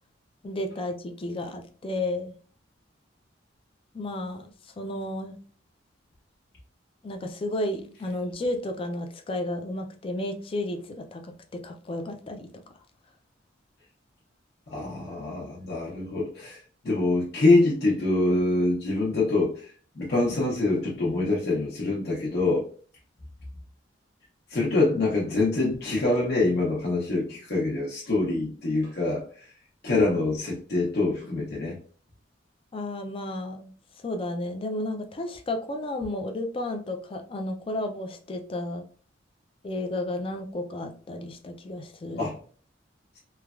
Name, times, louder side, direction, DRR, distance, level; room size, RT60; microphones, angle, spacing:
voice 1, 0.4-2.4 3.9-4.5 4.8-5.4 7.0-12.5 32.7-33.7 34.0-38.9 39.6-42.2, left 1 dB, 30° left, 5 dB, 0.4 m, -32 dB
voice 2, 14.7-22.7 24.5-29.5 29.8-31.8 42.2-42.4, left 2 dB, 55° left, -4 dB, 0.8 m, -25 dB
3.1 x 2.2 x 2.3 m, 0.42 s
head